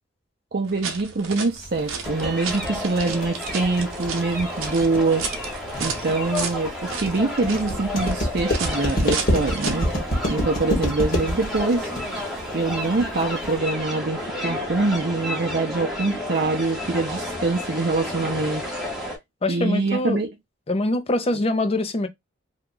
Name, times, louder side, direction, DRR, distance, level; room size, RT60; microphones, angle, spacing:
voice 1, 0.5-5.3 5.8-9.9 10.3-11.9 12.5-18.6 19.5-20.3, right 3 dB, 50° right, 0.6 m, -24 dB
sound 1, 0.6-9.9, right 5 dB, 85° right, 0.8 m, -34 dB
sound 2, 1.6-13.6, equal, 50° left, 1.2 m, -27 dB
sound 3, 2.0-19.2, left 1 dB, ahead, 0.9 m, -31 dB
voice 2, 19.4-20.2 20.7-22.1, left 2 dB, 30° left, 0.5 m, -24 dB
2.9 x 2.3 x 3.7 m
head